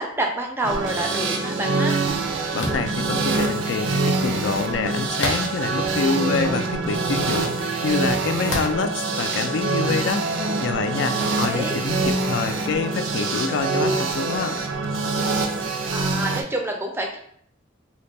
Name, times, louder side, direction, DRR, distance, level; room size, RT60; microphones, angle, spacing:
voice 1, 0.0-2.0 11.2-11.8 15.9-17.2, right 1 dB, 10° right, 2 dB, 0.4 m, -28 dB
sound 1, 0.6-16.4, right 3 dB, 85° right, 0.5 m, -25 dB
voice 2, 2.5-10.3 10.6-14.6, left 5 dB, 70° left, 8 dB, 0.3 m, -26 dB
sound 2, 2.6-2.9 5.2-5.7 6.4-6.5 8.5-8.9, left 2 dB, 90° left, 0.7 m, -27 dB
2.6 x 2.2 x 3.9 m, 0.65 s
head